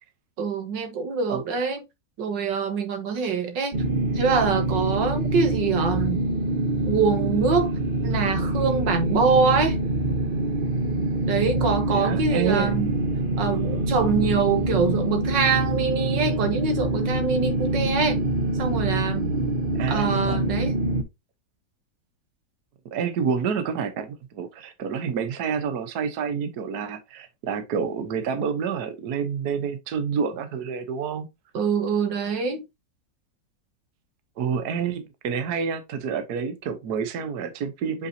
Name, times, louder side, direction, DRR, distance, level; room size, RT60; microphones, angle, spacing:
voice 1, 0.4-1.8 2.2-3.8 4.2-6.3 6.9-7.7 8.0-9.8 11.3-12.9 13.4-18.3 18.6-19.3 19.9-20.7 31.5-32.6, right 5 dB, 85° right, 2.1 m, -24 dB
sound 1, 3.7-21.0, right 2 dB, 40° right, 0.9 m, -25 dB
voice 2, 11.9-12.7 19.7-20.4 22.9-31.3 34.4-38.1, right 6 dB, 65° right, 1.5 m, -28 dB
6.9 x 5.4 x 2.8 m
omnidirectional pair, 1.9 m